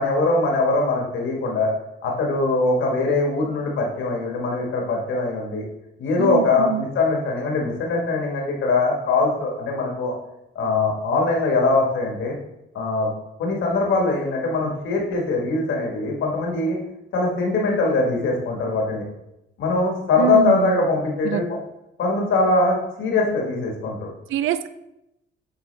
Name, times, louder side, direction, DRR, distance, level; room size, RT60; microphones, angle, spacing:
voice 1, 0.0-1.7 2.0-5.6 6.0-10.1 10.5-12.3 12.7-13.1 13.4-16.8 17.1-19.0 19.6-21.4 22.0-24.1, left 3 dB, 80° left, 0 dB, 1.6 m, -22 dB
voice 2, 6.2-6.8 20.2-20.8 21.2-21.4 24.3-24.7, right 13 dB, 80° right, 12 dB, 0.4 m, -24 dB
8.4 x 3.5 x 3.3 m, 0.88 s
cardioid pair, 90°, 20 cm